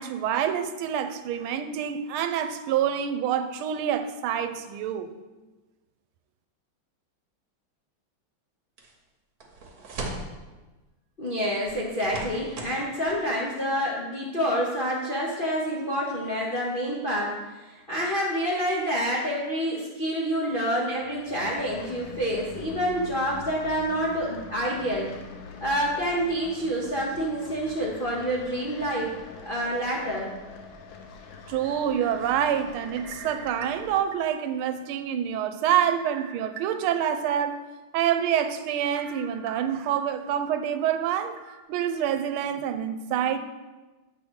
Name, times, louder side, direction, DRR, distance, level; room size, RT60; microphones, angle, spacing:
voice 1, 0.0-5.1 31.5-37.6 37.9-41.4 41.7-43.4, right 9 dB, 85° right, 10 dB, 1.4 m, -27 dB
sound 1, 8.8-8.9 9.4-10.3 11.6-12.8 13.1-13.2, right 2 dB, 50° right, 1.4 m, -37 dB
voice 2, 11.2-25.1 25.6-29.1 29.4-30.3, equal, 50° left, -5 dB, 0.6 m, -28 dB
sound 2, 21.0-34.0, left 4 dB, 70° left, 1.4 m, -44 dB
sound 3, 32.9-34.6 35.1-35.2 36.1-37.1 37.6-37.7 39.0-40.0 40.5-40.6 41.4-41.6, right 7 dB, 70° right, 1.4 m, -43 dB
8.1 x 3.6 x 6.1 m, 1.2 s
omnidirectional pair, 2.3 m